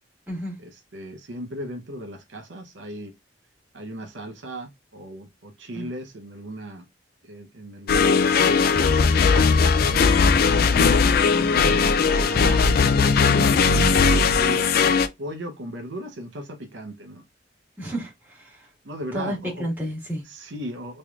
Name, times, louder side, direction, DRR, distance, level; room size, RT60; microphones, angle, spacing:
voice 1, 0.6-3.1 3.7-6.9 7.2-9.1 9.8-10.1 10.5-14.7 15.2-17.2 18.8-19.7 20.2-21.0, right 1 dB, 80° right, 0.8 m, -37 dB
sound 1, 7.9-15.1, left 5 dB, 55° left, 0.4 m, -18 dB
voice 2, 17.8-18.5 19.1-20.2, equal, 10° right, 1.7 m, -31 dB
3.3 x 3.1 x 2.4 m
head